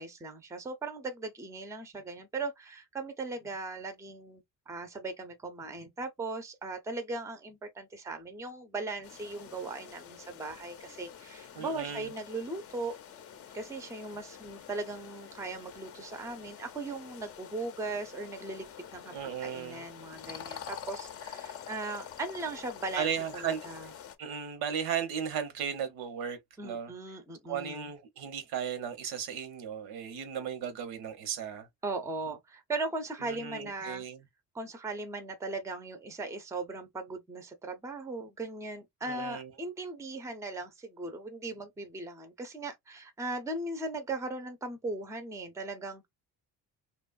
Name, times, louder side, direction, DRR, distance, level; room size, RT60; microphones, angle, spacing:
voice 1, 0.0-13.0 13.5-23.9 26.6-27.9 31.8-34.0 34.5-46.1, right 3 dB, 10° right, 0.5 m, -38 dB
sound 1, 9.0-24.2, left 9 dB, 40° left, 0.5 m, -47 dB
voice 2, 11.5-12.1 19.1-19.9 22.9-23.7 24.2-26.9 27.4-31.7 33.2-34.3 39.0-39.5, right 8 dB, 85° right, 0.9 m, -36 dB
2.9 x 2.3 x 2.4 m
cardioid pair, 145°, 36 cm